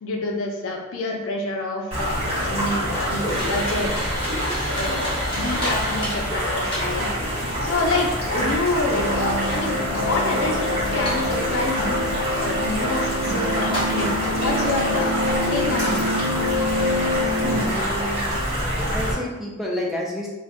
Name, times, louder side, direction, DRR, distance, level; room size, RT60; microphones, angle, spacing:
voice 1, 0.0-3.9 4.2-4.4 4.6-15.2 15.5-16.1 17.4-17.6, left 2 dB, 70° left, 1 dB, 0.5 m, -28 dB
sound 1, 1.9-19.1, equal, 25° right, 1.0 m, -26 dB
sound 2, 3.3-18.5, equal, 25° left, 0.9 m, -35 dB
sound 3, 8.9-17.6, left 1 dB, 65° right, 0.7 m, -26 dB
voice 2, 17.6-18.4 18.9-20.3, left 1 dB, ahead, -4 dB, 0.3 m, -29 dB
2.5 x 2.1 x 3.5 m, 1.1 s
head